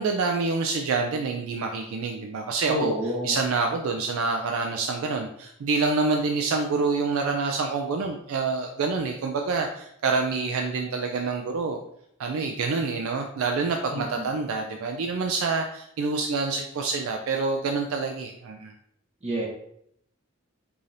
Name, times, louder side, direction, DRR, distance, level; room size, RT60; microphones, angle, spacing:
voice 1, 0.0-2.9 3.2-11.8 12.2-18.7, right 4 dB, 75° right, 3 dB, 0.4 m, -27 dB
voice 2, 2.7-3.4 13.9-14.3 19.2-19.4, equal, 30° right, -4 dB, 0.7 m, -28 dB
4.8 x 2.7 x 2.5 m, 0.72 s
head